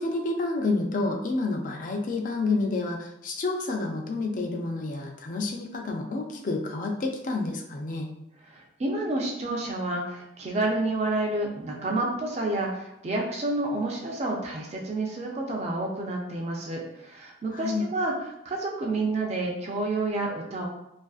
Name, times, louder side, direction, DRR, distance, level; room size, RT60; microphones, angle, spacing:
voice 1, 0.0-8.1 17.5-17.8, left 3 dB, 45° left, 2 dB, 0.4 m, -29 dB
voice 2, 8.5-18.1 18.4-20.7, right 2 dB, 35° right, -1 dB, 0.4 m, -29 dB
2.5 x 2.4 x 2.3 m, 0.83 s
head